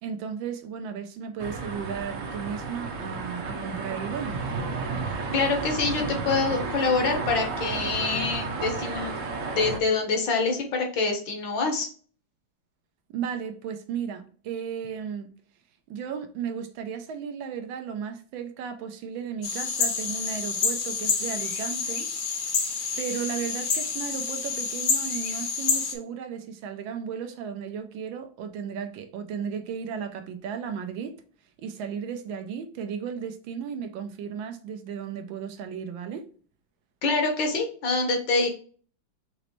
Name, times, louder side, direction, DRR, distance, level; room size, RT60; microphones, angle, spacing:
voice 1, 0.0-4.4 13.1-15.3 15.9-22.1 23.0-31.1 31.6-36.3, right 7 dB, 90° right, 1.4 m, -35 dB
sound 1, 1.4-9.8, right 4 dB, 60° right, 0.8 m, -32 dB
voice 2, 5.3-9.1 9.5-11.9 37.0-38.5, left 4 dB, 70° left, 1.8 m, -25 dB
sound 2, 19.4-25.9, left 5 dB, 55° left, 1.1 m, -28 dB
5.3 x 3.0 x 3.0 m
omnidirectional pair, 2.1 m